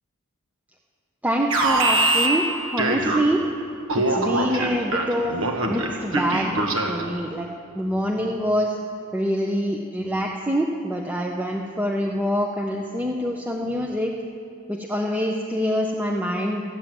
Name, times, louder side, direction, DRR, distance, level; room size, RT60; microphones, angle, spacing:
voice 1, 1.2-3.4 4.0-5.3 5.7-7.5 7.7-8.8 9.1-14.1 14.7-16.6, equal, 5° right, -1 dB, 0.6 m, -25 dB
Alarm, 1.5-3.5 3.9-7.1, right 2 dB, 70° right, 1.3 m, -23 dB
14.0 x 7.7 x 9.1 m, 2.4 s
head